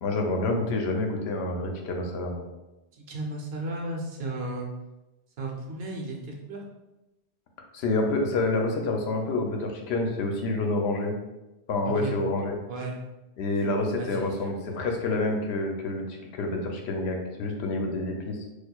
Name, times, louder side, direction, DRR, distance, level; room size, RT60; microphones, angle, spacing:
voice 1, 0.0-2.4 7.7-11.1 11.7-12.6 13.4-18.5, left 2 dB, 80° left, 2 dB, 0.8 m, -28 dB
voice 2, 2.9-4.7 5.4-6.6 11.8-12.2 12.7-12.9 13.9-14.5, right 2 dB, 70° right, 0 dB, 0.9 m, -34 dB
4.3 x 2.4 x 2.3 m, 1.0 s
omnidirectional pair, 1.1 m